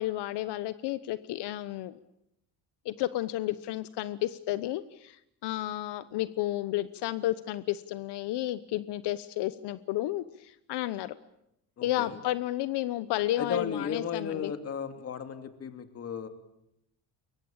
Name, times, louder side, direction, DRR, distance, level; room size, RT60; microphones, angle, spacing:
voice 1, 0.0-2.0 2.8-11.2 11.8-14.5, left 15 dB, 80° left, 14 dB, 1.0 m, -32 dB
voice 2, 11.8-12.2 13.4-16.3, left 7 dB, 35° left, 8 dB, 2.6 m, -35 dB
29.5 x 23.0 x 8.9 m, 0.82 s
cardioid pair, 175°, 40 cm